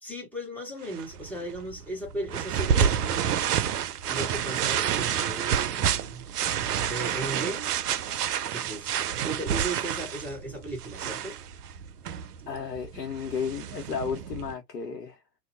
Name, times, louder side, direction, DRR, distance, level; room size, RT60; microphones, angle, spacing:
voice 1, 0.0-3.3 4.1-6.2 6.8-7.7 8.5-9.0 9.2-11.4, right 1 dB, 5° left, 1.0 m, -36 dB
sound 1, 0.8-14.5, right 9 dB, 70° right, 0.5 m, -29 dB
voice 2, 12.5-15.2, left 6 dB, 80° left, 0.8 m, -33 dB
2.6 x 2.1 x 2.5 m
figure-of-eight pair, 95°, 49 cm